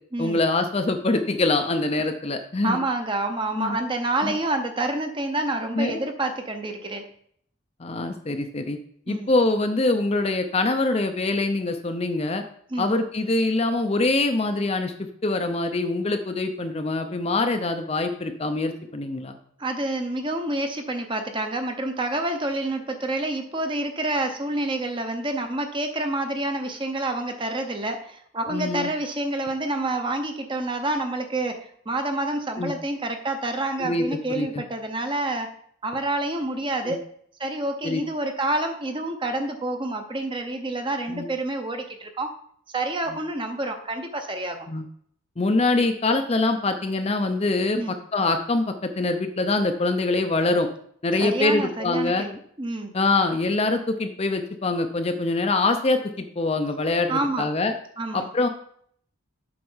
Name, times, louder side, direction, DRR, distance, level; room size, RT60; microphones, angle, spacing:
voice 1, 0.2-2.8 3.6-3.8 4.2-4.3 5.7-6.0 7.8-8.8 9.1-12.4 12.8-19.4 28.5-28.9 32.6-32.7 33.8-34.6 36.8-37.0 37.8-38.0 41.1-41.3 43.1-43.2 44.7-44.9 45.4-50.7 51.0-52.2 52.9-57.7 58.1-58.5, left 2 dB, 30° left, 6 dB, 0.5 m, -24 dB
voice 2, 2.6-7.1 9.1-9.3 12.7-12.9 19.6-35.5 35.8-37.0 37.4-42.3 42.7-44.7 47.7-47.9 51.2-52.9 57.1-57.5 58.0-58.3, right 2 dB, 20° right, 6 dB, 0.7 m, -28 dB
7.8 x 4.3 x 5.5 m, 0.64 s
head